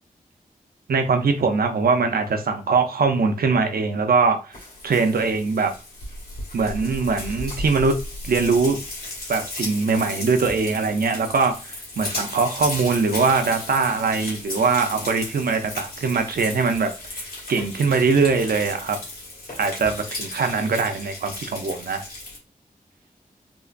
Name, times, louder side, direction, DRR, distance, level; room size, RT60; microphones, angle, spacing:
voice 1, 0.9-4.6 4.8-5.7 6.5-7.9 8.2-8.8 9.3-17.2 17.5-19.0 19.6-22.0, right 4 dB, 80° right, 0.6 m, -22 dB
Frying (food), 4.5-22.4, left 2 dB, 75° left, 1.9 m, -35 dB
3.8 x 2.9 x 2.5 m
wide cardioid pair, 65°, 15 cm